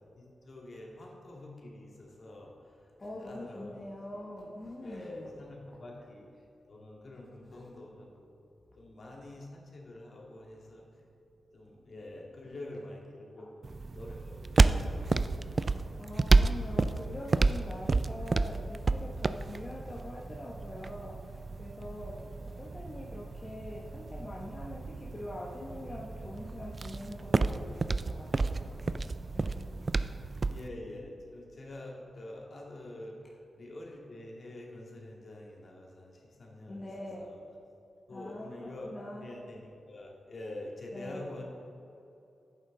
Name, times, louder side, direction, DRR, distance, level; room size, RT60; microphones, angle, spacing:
voice 1, 0.2-3.8 4.1-4.2 4.8-8.4 8.7-11.0 11.5-15.1 22.2-22.3 30.5-37.4 38.1-38.9 39.2-41.4, left 1 dB, 55° left, -2 dB, 2.1 m, -46 dB
voice 2, 3.0-5.3 7.5-7.6 13.4-13.5 15.2-15.3 15.6-29.8 36.7-37.3 38.1-39.3 40.9-41.4, left 1 dB, 30° left, -4 dB, 1.1 m, -44 dB
sound 1, 13.6-30.7, right 3 dB, 40° right, 0.3 m, -30 dB
11.0 x 8.6 x 3.9 m, 2.8 s
cardioid pair, 85°, 0 cm